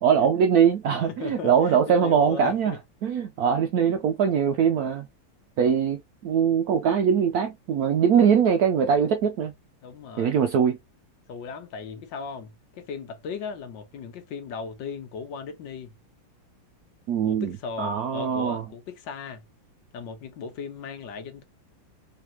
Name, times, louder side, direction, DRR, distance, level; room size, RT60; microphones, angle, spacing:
voice 1, 0.0-2.7 3.0-5.1 5.6-9.5 10.2-10.8 17.1-18.6, right 7 dB, 75° right, 0.8 m, -22 dB
voice 2, 1.1-2.8 9.8-10.4 11.3-15.9 17.2-19.4 19.9-21.4, left 5 dB, 75° left, 1.5 m, -37 dB
3.4 x 3.4 x 2.8 m
omnidirectional pair, 2.1 m